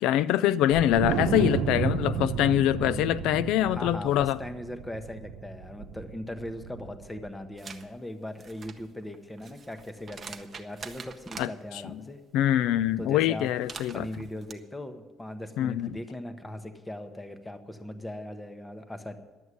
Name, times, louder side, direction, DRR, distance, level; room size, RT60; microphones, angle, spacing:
voice 1, 0.0-4.4 11.4-11.5 12.3-14.1 15.6-15.9, left 12 dB, 80° left, 0.3 m, -24 dB
Wind, 0.7-7.2, right 7 dB, 75° right, 0.9 m, -32 dB
voice 2, 3.5-12.2 13.0-13.5 13.9-19.2, left 1 dB, 5° left, 0.8 m, -39 dB
sound 1, 7.6-7.9 8.3-11.5 13.4-14.5, right 5 dB, 25° right, 0.7 m, -44 dB
11.0 x 7.9 x 9.5 m
cardioid pair, 180°, 0 cm